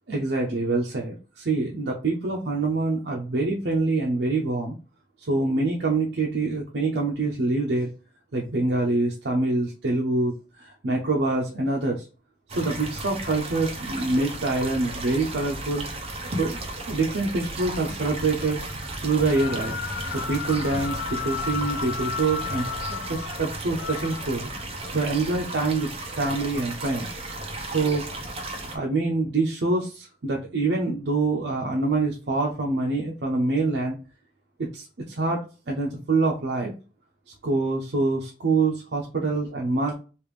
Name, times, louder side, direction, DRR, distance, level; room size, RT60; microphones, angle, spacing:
voice 1, 0.1-4.7 5.2-7.9 8.3-12.1 12.5-15.9 16.4-16.6 16.9-18.6 19.0-19.8 20.1-24.5 24.9-27.1 27.7-28.0 28.7-34.0 34.6-36.7 37.4-39.9, right 3 dB, 75° right, -1 dB, 0.6 m, -25 dB
sound 1, 12.5-28.8, right 2 dB, 35° right, 0.7 m, -34 dB
sound 2, 19.3-24.9, left 6 dB, 80° left, 0.4 m, -34 dB
3.3 x 2.5 x 3.3 m, 0.34 s
head